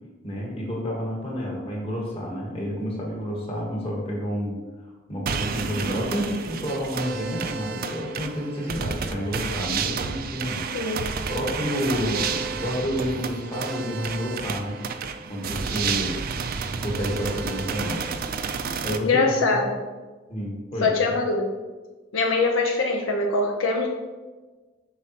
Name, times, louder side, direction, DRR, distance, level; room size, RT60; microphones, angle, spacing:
voice 1, 0.2-4.6 5.1-10.7 11.3-14.8 15.3-16.2 16.8-18.0 18.8-19.7 20.3-20.9, equal, 30° left, -2 dB, 1.4 m, -29 dB
sound 1, 5.3-19.0, right 5 dB, 50° right, 0.4 m, -30 dB
voice 2, 19.0-19.8 20.8-21.4 22.1-23.9, left 3 dB, 85° left, 2 dB, 0.7 m, -22 dB
6.7 x 4.9 x 2.9 m, 1.3 s
head